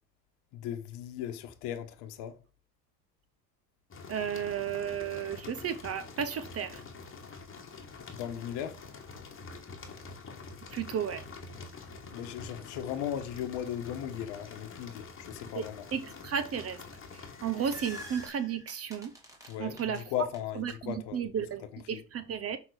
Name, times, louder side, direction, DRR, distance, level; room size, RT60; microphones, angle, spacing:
voice 1, 0.5-2.3 8.1-8.8 12.1-15.8 19.5-21.2 21.7-22.0, left 10 dB, 55° left, 1.2 m, -37 dB
sound 1, 3.9-18.3, left 4 dB, 25° left, 1.6 m, -46 dB
voice 2, 4.1-6.8 10.7-11.2 15.5-15.6 15.9-16.8 17.4-19.1 19.6-20.0 20.6-22.6, right 8 dB, 30° right, 0.7 m, -33 dB
sound 2, 17.1-20.4, equal, 5° right, 2.1 m, -48 dB
5.9 x 3.8 x 5.0 m
hypercardioid pair, 75°, 50 cm